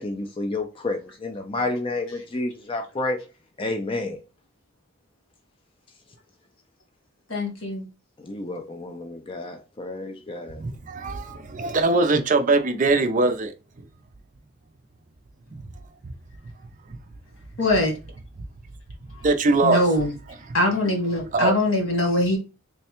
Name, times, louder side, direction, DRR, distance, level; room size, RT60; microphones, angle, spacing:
voice 1, 0.0-3.2 3.6-4.2 8.2-10.6, left 2 dB, 25° left, 0.5 m, -30 dB
voice 2, 7.3-7.9 17.6-17.9 19.1-19.3 19.6-20.1 20.5-22.4, left 1 dB, 75° left, 1.4 m, -22 dB
voice 3, 10.5-13.5 15.5-15.6 16.0-16.1 19.2-19.8 21.3-21.5, right 3 dB, 40° right, 0.5 m, -21 dB
3.3 x 2.2 x 4.3 m
head